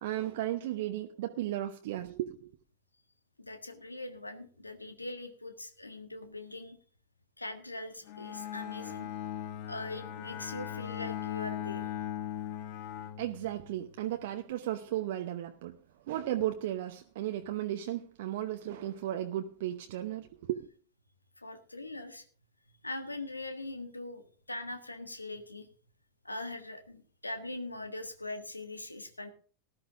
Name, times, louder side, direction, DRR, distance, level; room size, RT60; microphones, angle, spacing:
voice 1, 0.0-2.5 13.2-15.8 16.1-20.7, right 13 dB, 55° right, 5 dB, 0.9 m, -35 dB
voice 2, 3.4-6.8 7.4-9.1 9.7-11.9 21.4-22.2 22.8-24.2 24.5-25.7 26.2-29.3, left 2 dB, 85° left, 8 dB, 1.6 m, -41 dB
Bowed string instrument, 8.1-13.9, left 11 dB, 45° left, 1.2 m, -39 dB
18.5 x 12.5 x 2.6 m, 0.41 s
figure-of-eight pair, 90°, 0 cm